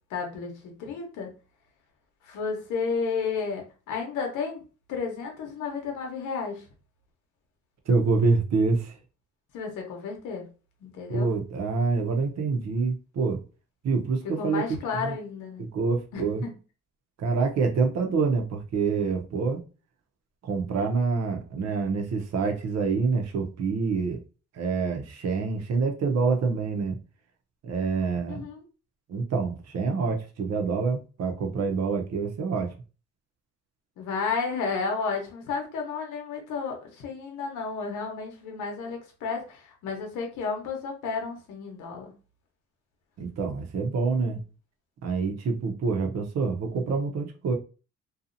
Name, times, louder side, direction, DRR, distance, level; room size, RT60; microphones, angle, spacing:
voice 1, 0.1-1.3 2.2-4.6 4.9-6.6 9.5-10.4 10.8-11.3 14.4-15.6 16.1-16.2 28.3-28.6 34.0-42.1, left 5 dB, 90° left, 0.9 m, -32 dB
voice 2, 7.9-9.0 11.1-13.4 13.8-14.6 14.9-15.2 15.6-16.4 17.2-19.6 20.4-24.2 24.5-27.0 27.6-28.5 29.1-32.7 43.2-44.4 45.0-47.6, right 4 dB, 60° right, 0.7 m, -26 dB
2.8 x 2.4 x 2.5 m
cardioid pair, 90°, 30 cm